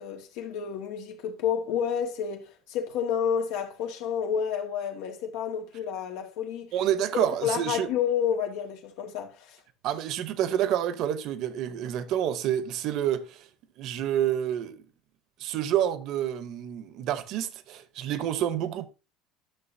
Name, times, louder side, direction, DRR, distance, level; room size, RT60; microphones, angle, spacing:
voice 1, 0.0-2.4 2.7-6.7 7.1-9.6, left 8 dB, 80° left, 1.9 m, -30 dB
voice 2, 6.7-7.9 9.8-13.4 13.8-14.8 15.4-18.9, right 10 dB, 50° right, 0.9 m, -28 dB
11.0 x 6.5 x 2.7 m
cardioid pair, 170°, 0 cm